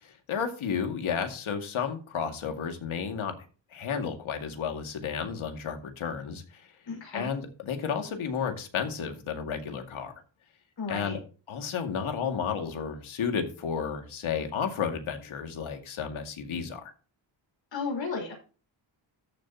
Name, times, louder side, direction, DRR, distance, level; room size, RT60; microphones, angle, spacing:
voice 1, 0.0-3.3 3.7-6.7 7.1-10.1 10.9-11.2 11.5-16.9, left 6 dB, 85° left, 5 dB, 2.3 m, -32 dB
voice 2, 6.9-7.3 10.8-11.2 17.7-18.3, left 4 dB, 65° left, 2 dB, 5.4 m, -33 dB
13.5 x 7.4 x 2.9 m, 0.36 s
wide cardioid pair, 135°, 47 cm